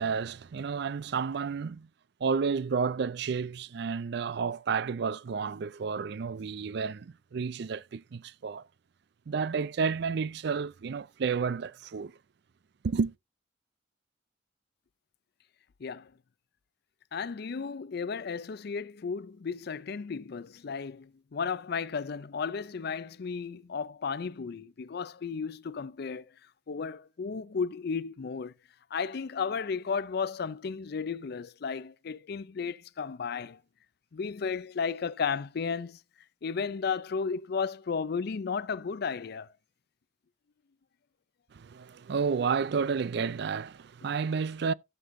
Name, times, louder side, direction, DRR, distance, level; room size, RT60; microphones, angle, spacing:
voice 1, 0.0-1.9 2.2-8.6 9.3-12.1 12.8-13.1 41.5-44.7, right 5 dB, 65° right, 0.4 m, -31 dB
voice 2, 15.8-16.1 17.1-26.2 26.7-28.5 28.9-33.6 34.1-36.0 36.4-39.5, left 5 dB, 60° left, 0.5 m, -34 dB
15.0 x 6.8 x 2.6 m
head